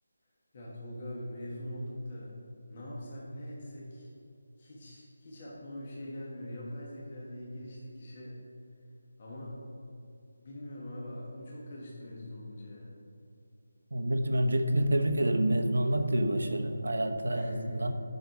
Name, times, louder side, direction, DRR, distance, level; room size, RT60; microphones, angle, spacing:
voice 1, 0.5-2.3 2.7-4.1 4.6-8.4 9.2-9.6 10.4-13.0 17.3-17.9, left 1 dB, 35° left, -5 dB, 1.5 m, -42 dB
voice 2, 13.9-17.9, right 1 dB, 85° right, 5 dB, 1.0 m, -28 dB
9.9 x 6.5 x 4.7 m, 2.7 s
figure-of-eight pair, 170°, 0 cm